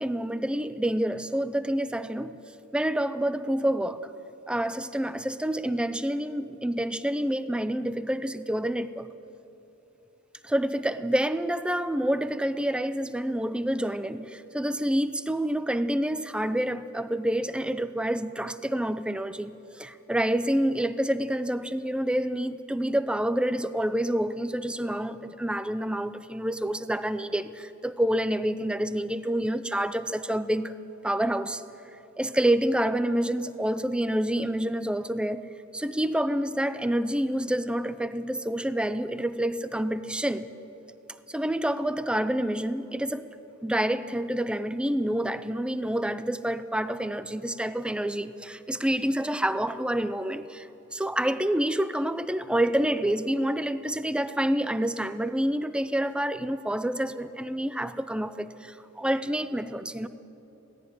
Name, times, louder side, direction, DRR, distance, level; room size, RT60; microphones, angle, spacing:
voice 1, 0.0-4.0 4.5-9.1 10.4-30.7 31.0-31.6 32.2-35.5 35.7-40.5 41.3-43.3 43.6-60.1, right 1 dB, 5° right, 13 dB, 0.4 m, -28 dB
17.5 x 16.0 x 9.5 m, 3.0 s
head